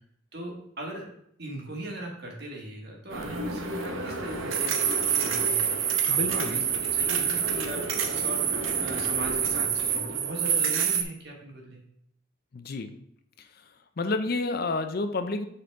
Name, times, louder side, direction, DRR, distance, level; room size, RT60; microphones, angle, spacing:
voice 1, 0.3-1.1 1.4-5.8 6.1-11.8, right 1 dB, 55° right, 0 dB, 1.7 m, -39 dB
sound 1, 3.1-11.0, right 7 dB, 85° right, 0.8 m, -27 dB
voice 2, 6.1-6.7 12.5-13.0 13.4-15.5, left 3 dB, 50° left, 8 dB, 0.5 m, -31 dB
6.5 x 4.3 x 4.6 m, 0.71 s
head